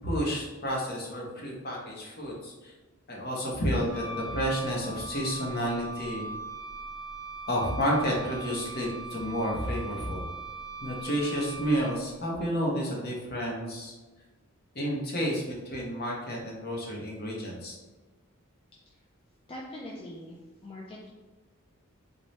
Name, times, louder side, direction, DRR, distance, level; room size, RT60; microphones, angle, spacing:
voice 1, 0.0-2.7 3.1-6.3 7.5-10.3 10.8-13.9 14.7-17.8, equal, 45° left, -2 dB, 0.8 m, -30 dB
Wind instrument woodwind instrument, 3.9-12.2, right 2 dB, 45° right, 0.6 m, -40 dB
voice 2, 19.5-21.1, left 1 dB, 25° left, -4 dB, 0.4 m, -42 dB
4.0 x 2.2 x 3.1 m, 1.2 s
head